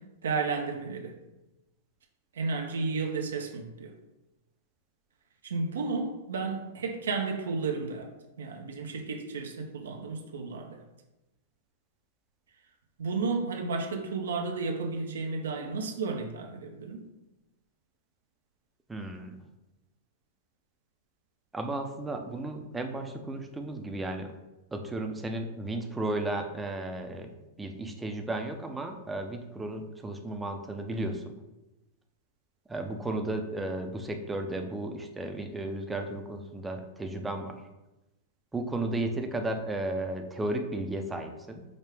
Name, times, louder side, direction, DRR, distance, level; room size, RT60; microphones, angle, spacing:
voice 1, 0.2-1.1 2.3-3.9 5.4-8.1 8.4-10.8 13.0-17.0, right 4 dB, 80° right, 3 dB, 0.5 m, -32 dB
voice 2, 18.9-19.4 21.5-24.3 24.7-27.3 27.6-31.2 32.7-37.6 38.5-41.7, right 2 dB, 10° right, 4 dB, 0.5 m, -34 dB
5.0 x 2.1 x 3.3 m, 0.99 s
hypercardioid pair, 115°, 0 cm